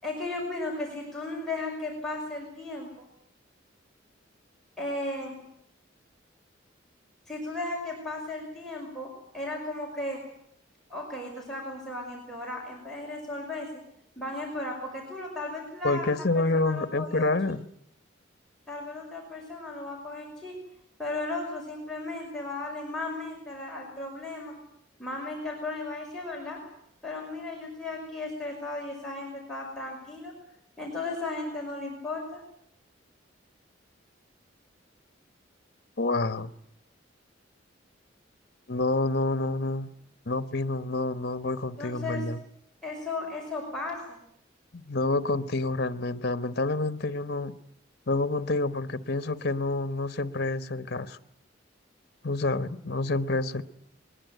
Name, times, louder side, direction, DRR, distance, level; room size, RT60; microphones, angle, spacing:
voice 1, 0.0-3.1 4.8-5.4 7.3-10.2 10.9-13.7 14.2-17.3 18.7-20.6 21.0-24.5 25.0-26.6 27.0-30.3 30.8-32.4 41.8-42.2 42.8-44.2, left 2 dB, ahead, -3 dB, 5.5 m, -35 dB
voice 2, 15.8-17.6 36.0-36.5 38.7-39.9 40.3-42.4 44.7-47.5 48.1-51.2 52.2-53.6, left 2 dB, 55° left, 11 dB, 1.2 m, -28 dB
21.5 x 21.0 x 9.3 m, 0.72 s
head